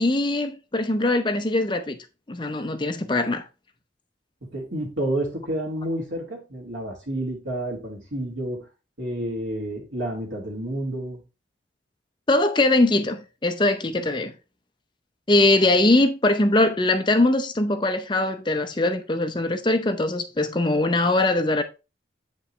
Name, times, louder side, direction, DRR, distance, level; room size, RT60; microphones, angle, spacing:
voice 1, 0.0-2.0 2.3-3.4 12.3-14.3 15.3-21.6, left 2 dB, 25° left, 0.7 m, -21 dB
voice 2, 4.4-8.7 9.0-11.2, right 1 dB, 80° right, 2.6 m, -30 dB
8.3 x 5.3 x 3.2 m
head